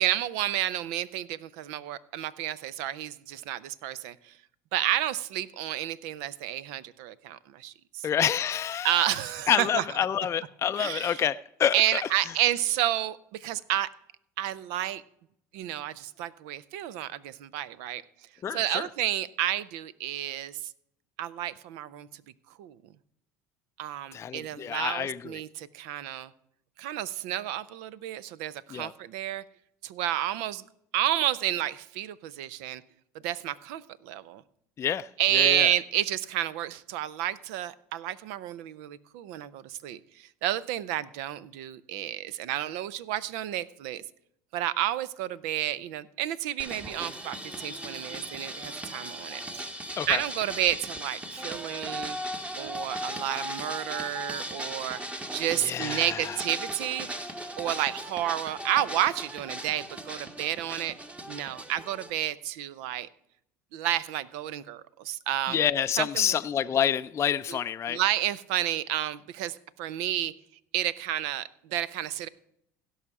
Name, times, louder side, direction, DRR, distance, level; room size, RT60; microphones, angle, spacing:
voice 1, 0.0-4.3 4.7-8.1 8.8-9.8 10.8-11.2 11.7-13.9 14.4-15.0 15.5-18.0 18.5-20.7 21.2-22.2 22.6-22.8 23.8-26.3 26.8-29.4 29.8-30.6 30.9-32.8 33.2-34.4 35.2-44.0 44.5-49.7 50.1-52.2 52.6-55.0 55.3-57.1 57.6-60.9 61.3-63.1 63.7-65.6 66.0-66.4 67.5-67.6 67.9-70.3 70.7-72.3, right 12 dB, 75° right, 0.6 m, -30 dB
voice 2, 8.0-9.2 9.5-11.8 18.4-18.9 24.1-25.4 28.7-28.9 34.8-35.7 50.0-50.2 55.6-56.4 65.5-68.0, left 9 dB, 35° left, 0.4 m, -28 dB
sound 1, 46.6-62.1, equal, 15° right, 1.2 m, -38 dB
16.5 x 5.6 x 4.8 m
hypercardioid pair, 80°, 8 cm